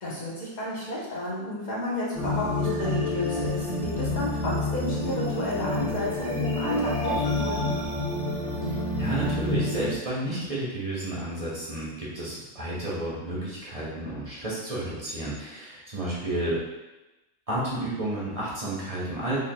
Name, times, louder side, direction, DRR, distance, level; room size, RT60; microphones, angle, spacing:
voice 1, 0.0-7.7, left 1 dB, 35° left, -6 dB, 1.0 m, -32 dB
sound 1, 2.1-9.9, left 2 dB, 5° left, 1.3 m, -28 dB
voice 2, 8.6-16.6 17.5-19.4, right 1 dB, 30° right, -8 dB, 0.9 m, -31 dB
4.5 x 3.2 x 2.2 m, 1.0 s
omnidirectional pair, 1.3 m